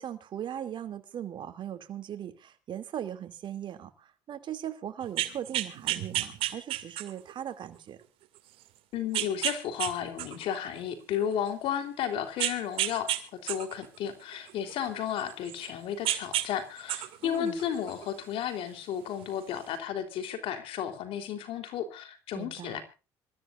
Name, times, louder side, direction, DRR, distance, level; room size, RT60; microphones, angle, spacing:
voice 1, 0.0-8.0 17.2-17.6 22.3-22.8, right 10 dB, 55° right, 9 dB, 2.6 m, -39 dB
sound 1, 5.0-7.3 7.9-8.0 9.1-9.9 10.2-11.5 12.4-13.2 13.5-15.7 16.0-16.5 16.8-18.2 19.2-19.3, right 14 dB, 75° right, 2.3 m, -31 dB
voice 2, 8.9-22.8, left 9 dB, 70° left, 8 dB, 3.5 m, -33 dB
26.5 x 14.5 x 2.5 m, 0.33 s
supercardioid pair, 85°, 10 cm